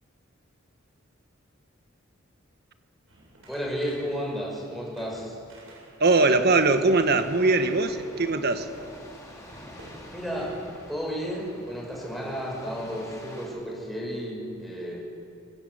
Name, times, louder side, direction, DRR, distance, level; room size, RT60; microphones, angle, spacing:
sound 1, 3.1-10.7, right 1 dB, 75° right, 7.8 m, -51 dB
voice 1, 3.5-5.4 10.1-10.6 10.9-15.0, equal, ahead, -3 dB, 6.3 m, -32 dB
sound 2, 6.0-13.5, left 1 dB, 15° left, 4.5 m, -47 dB
voice 2, 6.0-8.7, right 3 dB, 55° right, 8 dB, 1.5 m, -21 dB
25.5 x 16.0 x 8.2 m, 2.8 s
head